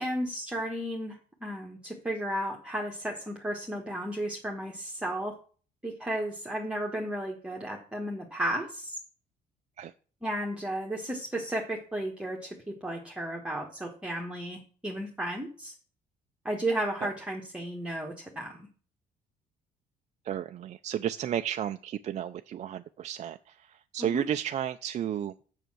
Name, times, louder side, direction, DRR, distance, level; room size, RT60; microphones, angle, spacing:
voice 1, 0.0-5.3 5.8-9.0 10.2-15.7 16.4-18.7 24.1-24.2, right 1 dB, 5° right, -1 dB, 1.4 m, -34 dB
voice 2, 20.2-25.3, right 10 dB, 45° right, 8 dB, 0.4 m, -33 dB
6.8 x 6.6 x 6.1 m, 0.41 s
cardioid pair, 110°, 17 cm